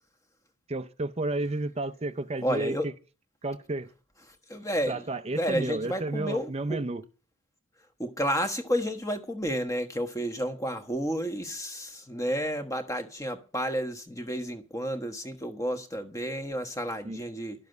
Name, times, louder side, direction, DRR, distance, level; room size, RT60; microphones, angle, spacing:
voice 1, 0.7-2.9 3.4-3.9 4.9-7.0 17.0-17.2, right 2 dB, 30° right, 0.6 m, -31 dB
voice 2, 2.4-2.9 4.5-5.0 5.3-6.8 8.0-17.7, equal, 15° left, 1.3 m, -31 dB
12.0 x 7.1 x 7.9 m
head